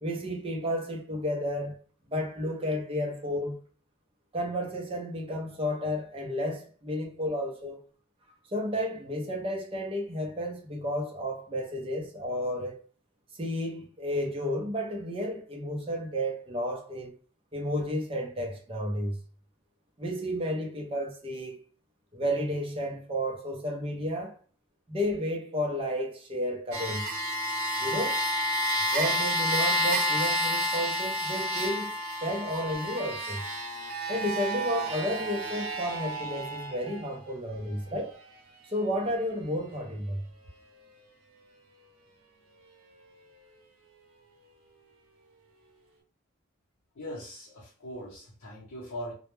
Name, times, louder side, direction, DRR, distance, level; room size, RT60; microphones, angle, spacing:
voice 1, 0.0-1.8 2.1-3.6 4.3-7.8 8.5-12.8 13.4-17.1 17.5-19.2 20.0-21.6 22.1-24.3 24.9-27.1 27.8-28.2 28.9-31.9 32.2-33.4 34.1-38.1 38.7-40.2, equal, 25° right, 0.5 m, -32 dB
sound 1, 26.7-37.1 37.9-38.0, equal, 90° right, 0.7 m, -30 dB
voice 2, 47.0-49.1, equal, 80° left, 0.7 m, -40 dB
2.1 x 2.1 x 3.0 m
head